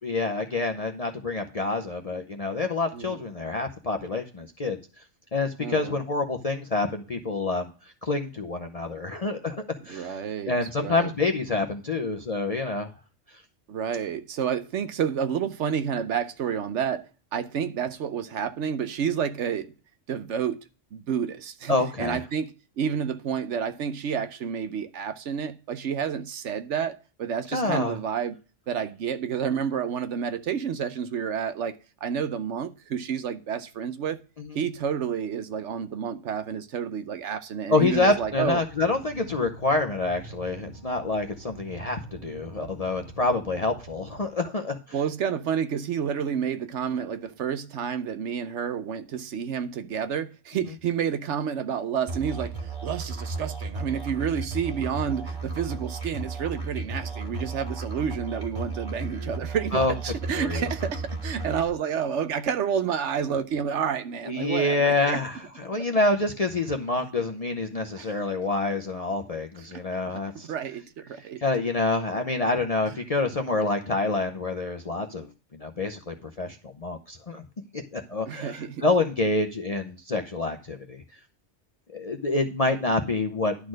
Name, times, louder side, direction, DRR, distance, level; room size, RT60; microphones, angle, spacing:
voice 1, 0.0-4.8 5.3-7.7 8.0-9.6 9.8-10.2 10.5-12.9 21.7-22.2 27.5-28.0 34.4-34.5 37.7-44.8 59.7-59.9 60.4-60.7 64.3-70.5 71.4-75.3 75.6-77.4 77.9-81.0 81.9-83.7, left 3 dB, 35° left, 0.7 m, -27 dB
voice 2, 5.6-6.0 9.9-11.1 13.7-19.7 20.1-20.6 20.9-28.4 28.7-34.2 34.5-38.6 44.9-65.2 68.0-68.2 70.1-71.4 78.3-78.8, right 7 dB, 75° right, 1.0 m, -30 dB
sound 1, 37.9-44.2, right 3 dB, 45° right, 1.6 m, -45 dB
Musical instrument, 52.1-61.7, right 3 dB, 25° right, 2.2 m, -34 dB
11.5 x 4.2 x 6.2 m
omnidirectional pair, 1.2 m